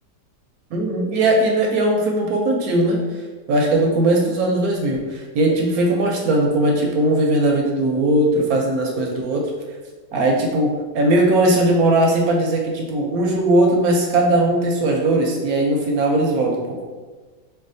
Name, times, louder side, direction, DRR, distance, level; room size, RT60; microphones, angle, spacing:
voice 1, 0.7-3.0 3.5-9.5 10.1-16.8, right 1 dB, 70° right, 0 dB, 0.9 m, -19 dB
4.7 x 2.3 x 2.5 m, 1.4 s
omnidirectional pair, 1.8 m